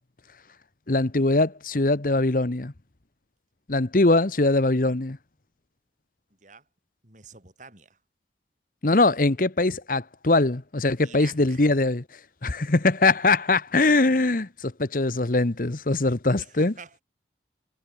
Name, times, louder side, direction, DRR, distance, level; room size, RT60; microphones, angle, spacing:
voice 1, 0.9-2.7 3.7-5.2 8.8-12.0 12.4-16.7, left 2 dB, 50° left, 1.0 m, -22 dB
voice 2, 7.0-8.0 11.0-11.6 16.4-17.0, right 5 dB, 45° right, 4.2 m, -47 dB
head